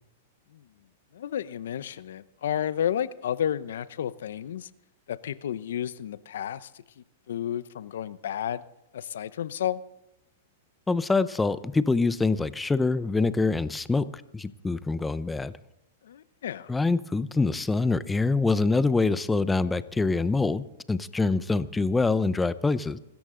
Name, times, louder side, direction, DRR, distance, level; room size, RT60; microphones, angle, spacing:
voice 1, 1.1-4.7 5.1-6.7 7.3-8.6 8.9-9.8 16.0-16.7, left 10 dB, 75° left, 16 dB, 0.7 m, -31 dB
voice 2, 10.9-14.1 14.3-15.5 16.7-23.0, left 3 dB, 10° left, 15 dB, 0.7 m, -25 dB
25.5 x 13.5 x 3.8 m, 0.85 s
hypercardioid pair, 140°, 0 cm